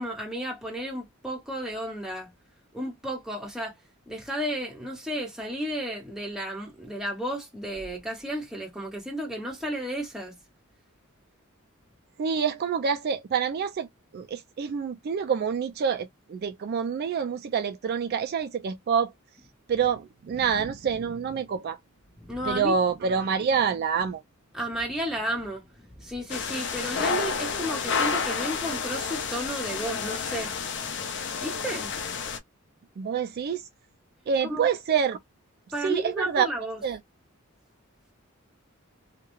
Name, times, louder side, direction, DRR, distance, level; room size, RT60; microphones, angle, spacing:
voice 1, 0.0-2.3 2.7-3.7 4.1-10.3 22.2-22.7 24.5-30.5 31.4-31.9 34.4-34.7 35.7-36.8, equal, ahead, 1.0 m, -33 dB
voice 2, 12.2-13.9 14.1-19.1 19.7-21.8 22.4-24.2 33.0-33.6 34.3-35.2 35.8-36.5 36.8-37.0, right 6 dB, 45° right, 0.3 m, -27 dB
sound 1, 26.3-32.4, left 5 dB, 55° left, 0.5 m, -30 dB
2.3 x 2.1 x 3.0 m
head